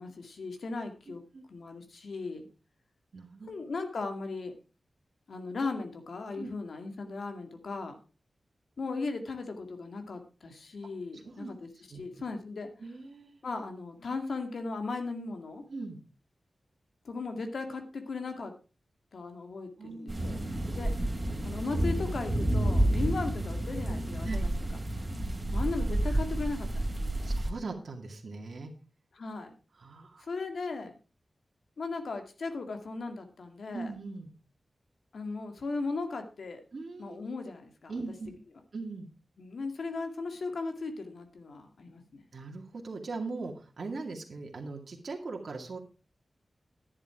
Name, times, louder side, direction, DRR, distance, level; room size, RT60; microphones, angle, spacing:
voice 1, 0.0-1.2 1.5-2.5 3.5-4.5 5.3-8.0 8.8-12.7 13.4-15.6 17.0-18.5 19.1-20.4 20.8-20.9 21.4-24.5 25.5-27.3 29.1-29.6 30.2-31.0 31.8-33.9 35.1-36.6 37.0-37.9 39.4-42.2, left 3 dB, 80° left, 6 dB, 2.2 m, -37 dB
voice 2, 3.1-3.5 6.4-6.5 11.2-11.5 11.9-12.0 12.8-13.4 15.7-16.0 19.8-20.4 22.9-23.0 24.2-24.4 27.2-28.7 29.8-30.3 33.7-34.3 36.7-37.2 37.9-38.3 38.7-39.1 42.3-45.8, right 3 dB, 65° right, 1 dB, 2.3 m, -40 dB
sound 1, 20.1-27.5, right 1 dB, 25° right, 2.6 m, -30 dB
11.0 x 9.9 x 4.8 m, 0.35 s
wide cardioid pair, 95°, 0 cm